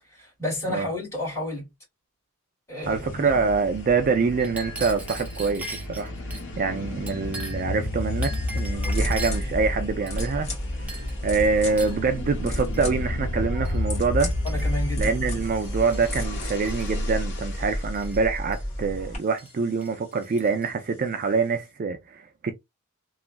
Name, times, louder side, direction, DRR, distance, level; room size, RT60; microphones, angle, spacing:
voice 1, 0.0-1.7 2.7-3.4 14.4-15.4, left 1 dB, 10° left, 2.0 m, -32 dB
sound 1, 2.8-18.1, left 1 dB, 55° left, 0.9 m, -32 dB
voice 2, 2.9-6.1 6.6-10.5 11.2-14.3 15.0-22.5, right 4 dB, 40° right, 0.3 m, -25 dB
Chink clink, 4.4-6.5 7.1-7.7 8.2-9.5 10.1-10.6 10.9-11.2 11.8-12.0 12.7-12.9 13.7-13.8 14.2-14.9 15.6-16.2 16.5-16.9 17.9-18.6 19.4-19.5 19.8-20.7, right 2 dB, 5° right, 0.7 m, -40 dB
sound 2, 8.7-19.2, equal, 30° left, 1.5 m, -32 dB
3.0 x 2.4 x 2.4 m
head